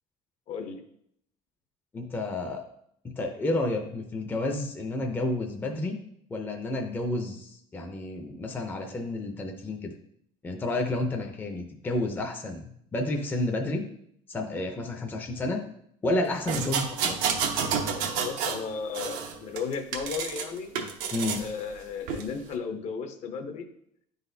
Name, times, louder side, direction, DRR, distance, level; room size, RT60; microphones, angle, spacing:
voice 1, 0.5-0.8 18.1-20.8 21.3-23.7, left 5 dB, 55° left, 7 dB, 0.7 m, -35 dB
voice 2, 1.9-2.6 3.0-6.0 6.3-9.9 10.4-13.8 14.3-15.7 16.0-17.2 21.1-21.4, left 2 dB, 15° left, 3 dB, 0.5 m, -30 dB
sound 1, 16.5-18.6 18.9-20.5 20.8-21.5 22.1-22.2, right 6 dB, 85° right, 0.9 m, -29 dB
9.7 x 4.0 x 2.7 m, 0.71 s
cardioid pair, 155°, 14 cm